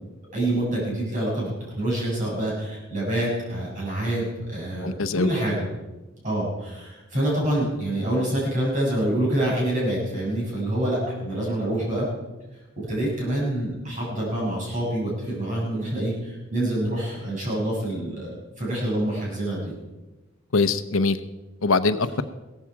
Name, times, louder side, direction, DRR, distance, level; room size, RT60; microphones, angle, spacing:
voice 1, 0.3-5.7 6.2-12.1 12.7-19.7, right 1 dB, 40° right, -5 dB, 6.8 m, -26 dB
voice 2, 4.8-5.3 20.5-21.2 21.6-22.2, left 4 dB, 70° left, 12 dB, 0.8 m, -22 dB
16.5 x 14.5 x 4.8 m, 1.1 s
head